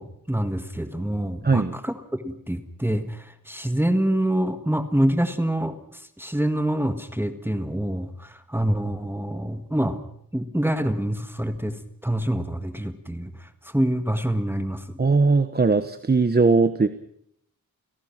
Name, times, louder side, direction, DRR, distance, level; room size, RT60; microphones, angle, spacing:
voice 1, 0.0-10.0 10.3-15.0, right 1 dB, 5° right, 7 dB, 1.7 m, -26 dB
voice 2, 1.4-1.8 15.0-16.9, right 4 dB, 30° right, 10 dB, 1.1 m, -19 dB
30.0 x 17.5 x 6.0 m, 0.70 s
wide cardioid pair, 125°, 35 cm